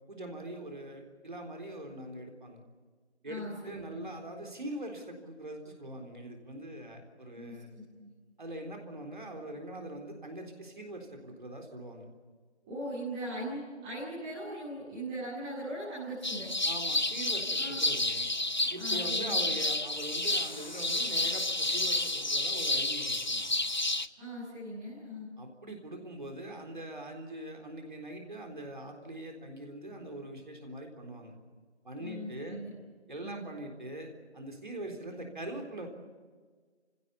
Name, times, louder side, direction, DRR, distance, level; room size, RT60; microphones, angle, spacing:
voice 1, 0.1-2.6 3.2-7.7 8.4-12.1 16.7-18.2 18.7-23.4 25.4-31.3 31.8-32.6 33.1-35.9, right 1 dB, 45° right, 2 dB, 3.9 m, -42 dB
voice 2, 3.2-4.1 7.3-8.1 12.6-16.5 17.5-17.8 18.7-19.4 24.2-25.3 32.0-32.7 33.2-33.5, equal, 5° right, -12 dB, 1.7 m, -40 dB
sound 1, 16.2-24.1, left 2 dB, 40° left, 0.6 m, -30 dB
29.0 x 16.5 x 8.4 m, 1.5 s
figure-of-eight pair, 165°, 34 cm